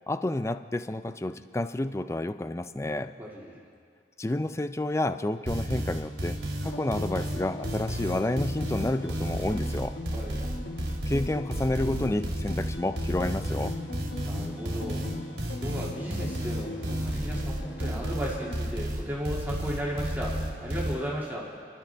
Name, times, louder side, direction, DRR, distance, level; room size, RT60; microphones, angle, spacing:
voice 1, 0.1-3.2 4.2-10.0 11.1-13.8, left 1 dB, 15° left, 11 dB, 0.4 m, -30 dB
voice 2, 2.9-3.6 10.1-10.4 14.2-15.0 15.6-21.5, equal, 10° right, -5 dB, 2.3 m, -35 dB
sound 1, 5.5-20.9, equal, 90° right, 2.7 m, -32 dB
sound 2, 6.7-18.5, left 2 dB, 90° left, 1.3 m, -41 dB
29.5 x 12.0 x 3.5 m, 2.2 s
head